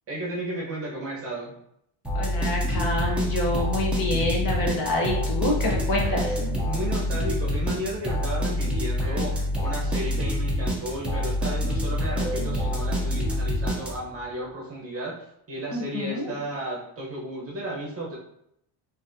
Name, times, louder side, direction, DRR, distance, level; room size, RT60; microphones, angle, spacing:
voice 1, 0.1-1.6 6.6-15.2 15.5-18.2, right 1 dB, 30° right, -3 dB, 0.8 m, -33 dB
sound 1, 2.0-14.2, left 1 dB, 5° right, 0.3 m, -26 dB
voice 2, 2.1-6.4 15.7-16.3, left 1 dB, 45° left, -1 dB, 0.7 m, -27 dB
4.0 x 2.7 x 2.5 m, 0.75 s
cardioid pair, 170°, 50 cm